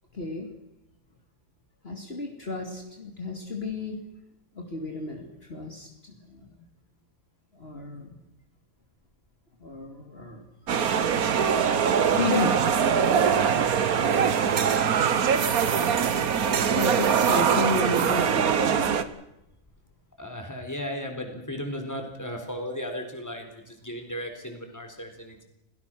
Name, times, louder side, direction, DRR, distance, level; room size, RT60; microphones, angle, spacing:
voice 1, 0.1-0.5 1.8-4.0 4.5-6.5 7.5-8.2 9.6-10.4 12.1-12.6 16.7-19.0, left 2 dB, 45° left, 1 dB, 2.8 m, -32 dB
sound 1, 10.7-19.0, right 7 dB, 85° right, 1.6 m, -23 dB
voice 2, 14.2-14.8 15.7-16.0 20.2-25.4, equal, 10° left, 4 dB, 3.9 m, -36 dB
28.5 x 18.0 x 6.3 m, 0.84 s
omnidirectional pair, 1.5 m